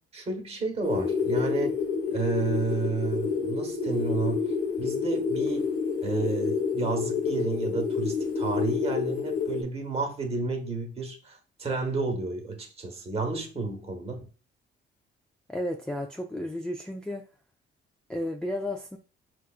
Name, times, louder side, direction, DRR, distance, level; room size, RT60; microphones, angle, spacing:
voice 1, 0.0-1.7 2.1-4.5 4.8-5.7 6.0-14.3, right 4 dB, 30° right, 1.0 m, -31 dB
sound 1, 0.8-9.6, left 5 dB, 90° left, 0.7 m, -28 dB
voice 2, 15.5-17.2 18.1-19.0, left 1 dB, 5° left, 0.3 m, -33 dB
4.7 x 2.3 x 2.4 m
cardioid pair, 90°, 20 cm